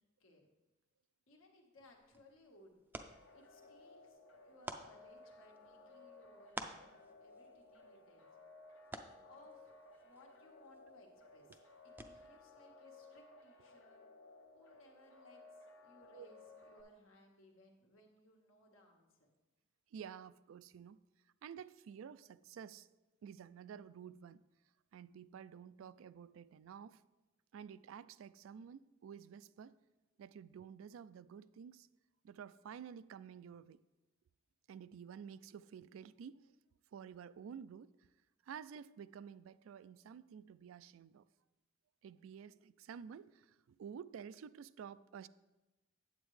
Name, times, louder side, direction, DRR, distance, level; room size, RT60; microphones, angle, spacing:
voice 1, 1.3-2.8 3.3-6.9 7.2-8.3 8.9-14.1 14.5-19.3, left 1 dB, 90° left, 1.4 m, -65 dB
sound 1, 1.8-12.5, right 2 dB, 10° right, 0.4 m, -54 dB
sound 2, 3.0-16.8, left 2 dB, 65° left, 0.9 m, -59 dB
voice 2, 19.9-21.0 21.4-22.9 23.2-24.4 24.9-27.0 27.5-29.8 30.2-31.9 32.2-33.8 34.7-36.5 36.9-37.9 38.4-41.2 42.0-45.3, right 7 dB, 80° right, 0.3 m, -51 dB
8.9 x 7.9 x 3.2 m
head